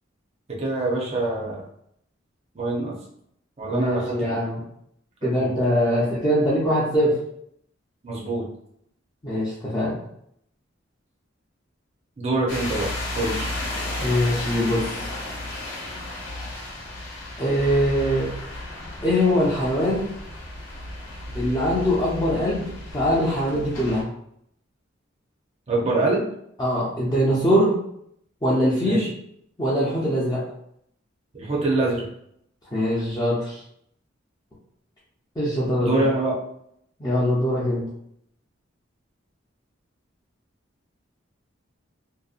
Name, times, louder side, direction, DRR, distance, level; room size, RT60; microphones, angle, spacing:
voice 1, 0.6-1.6 2.5-3.0 3.6-4.4 5.3-5.5 8.0-8.5 12.2-12.9 13.1-13.5 25.7-26.2 28.8-29.1 31.3-32.1 35.8-36.3, right 2 dB, 35° right, -4 dB, 0.6 m, -24 dB
voice 2, 3.7-4.6 5.2-7.1 9.2-10.0 14.0-15.0 17.4-18.3 19.0-20.1 21.3-24.1 26.6-27.7 28.4-29.1 29.6-30.4 32.7-33.6 35.4-36.0 37.0-37.8, equal, 20° left, -8 dB, 0.5 m, -22 dB
sound 1, 12.5-24.0, left 1 dB, 80° left, 0.8 m, -33 dB
2.6 x 2.1 x 2.4 m, 0.71 s
head